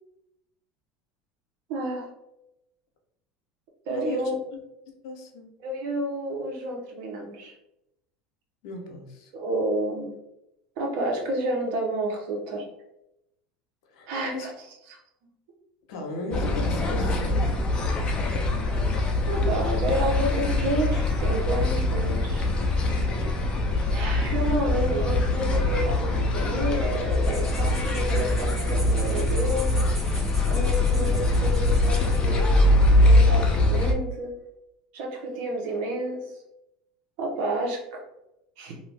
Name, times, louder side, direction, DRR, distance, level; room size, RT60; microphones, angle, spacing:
voice 1, 1.7-2.1 3.9-4.3 5.6-7.5 9.3-10.1 10.8-12.6 14.1-14.5 14.9-15.0 19.3-22.5 23.9-29.8 30.5-34.3 34.9-36.3 37.2-38.0 38.6-38.8, right 1 dB, 70° right, 0 dB, 0.9 m, -30 dB
voice 2, 3.9-4.6 5.0-5.5 8.6-9.3 13.9-14.1 14.3-14.5 15.9-17.5, left 2 dB, 75° left, 2 dB, 0.8 m, -36 dB
sound 1, 16.3-33.9, left 2 dB, 35° left, 0.6 m, -23 dB
sound 2, 27.1-32.4, right 1 dB, 10° right, 1.1 m, -42 dB
2.7 x 2.3 x 3.3 m, 0.85 s
supercardioid pair, 100°, 3 cm